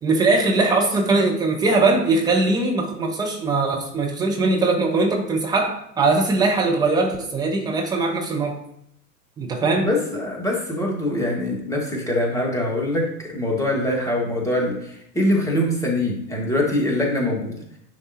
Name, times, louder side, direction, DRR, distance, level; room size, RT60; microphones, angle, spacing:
voice 1, 0.0-8.6 9.4-9.9, right 3 dB, 10° right, -1 dB, 0.5 m, -21 dB
voice 2, 9.8-17.6, left 1 dB, 5° left, -1 dB, 1.6 m, -23 dB
10.0 x 3.5 x 2.9 m, 0.73 s
figure-of-eight pair, 95°, 48 cm